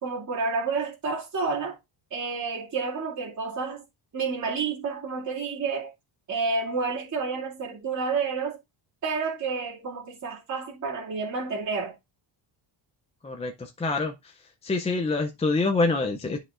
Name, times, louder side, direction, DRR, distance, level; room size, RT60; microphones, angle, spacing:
voice 1, 0.0-1.8 2.1-3.8 4.1-5.9 6.3-8.6 9.0-11.9, right 4 dB, 35° right, 2.3 m, -30 dB
voice 2, 13.2-14.3 14.6-16.4, left 3 dB, 15° left, 0.4 m, -26 dB
11.0 x 4.7 x 2.4 m
cardioid pair, 175°, 47 cm